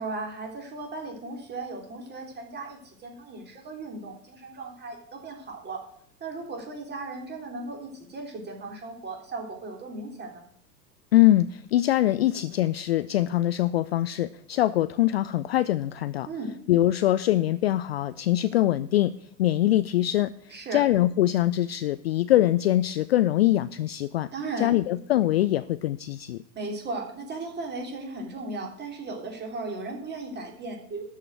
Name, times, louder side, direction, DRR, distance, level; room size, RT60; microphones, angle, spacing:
voice 1, 0.0-5.8 6.2-10.4 16.3-16.5 20.5-20.8 24.3-24.8 26.5-31.0, right 3 dB, 20° right, 2 dB, 3.4 m, -36 dB
voice 2, 11.1-16.3 16.7-19.1 19.4-20.3 20.7-24.3 24.6-26.4, left 14 dB, 40° left, 14 dB, 0.4 m, -23 dB
13.0 x 5.7 x 8.7 m, 0.66 s
figure-of-eight pair, 100°, 50 cm